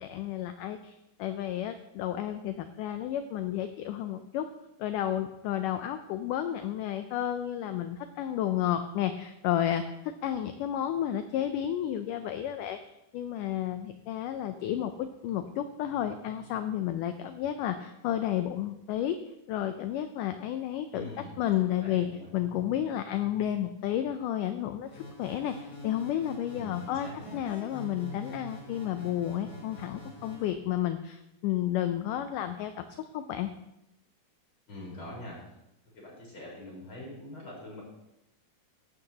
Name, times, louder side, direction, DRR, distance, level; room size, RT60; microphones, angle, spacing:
voice 1, 0.0-4.5 4.8-9.8 10.2-12.8 13.1-19.2 19.5-21.1 21.4-22.1 22.3-24.9 25.2-32.9 33.1-33.5, left 11 dB, 80° left, 9 dB, 1.9 m, -31 dB
voice 2, 20.9-21.4 21.7-22.3 26.5-27.4 34.7-35.4 35.9-37.8, left 1 dB, 35° left, -5 dB, 5.1 m, -44 dB
sound 1, 24.8-30.5, left 1 dB, 50° left, 5.0 m, -45 dB
16.5 x 12.0 x 2.9 m, 0.87 s
omnidirectional pair, 4.3 m